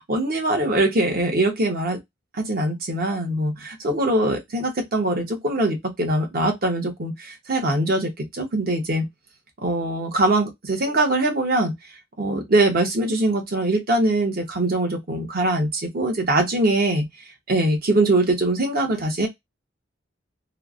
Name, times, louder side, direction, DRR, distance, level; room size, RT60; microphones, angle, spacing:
voice 1, 0.1-2.0 2.3-9.0 9.6-11.7 12.2-17.1 17.5-19.3, right 2 dB, 50° right, 1.0 m, -22 dB
3.1 x 2.0 x 2.4 m
head